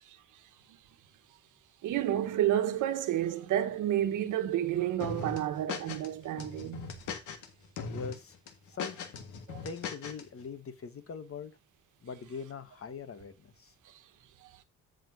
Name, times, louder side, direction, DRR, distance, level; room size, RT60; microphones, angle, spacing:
voice 1, 1.8-6.9 9.5-9.6, right 11 dB, 80° right, 1.3 m, -30 dB
sound 1, 5.0-6.1 6.4-7.5 7.8-8.2 8.5-10.2, left 5 dB, 80° left, 1.8 m, -39 dB
voice 2, 7.9-8.4 8.7-9.0 9.6-11.5 12.0-13.7, left 5 dB, 50° left, 1.5 m, -42 dB
14.0 x 5.3 x 2.7 m
cardioid pair, 90°, 30 cm